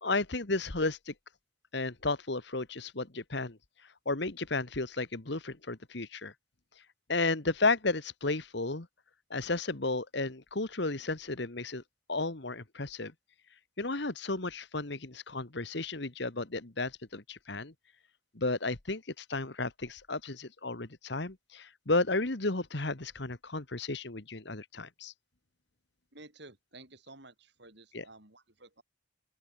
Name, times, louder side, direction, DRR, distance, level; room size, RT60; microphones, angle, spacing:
voice 1, 0.0-1.1 1.7-3.6 4.0-6.3 7.1-8.9 9.3-11.8 12.1-13.1 13.8-17.7 18.3-25.1 27.9-28.0, left 3 dB, 60° left, 1.6 m, -33 dB
voice 2, 26.1-28.8, right 2 dB, 60° right, 5.6 m, -53 dB
open air
head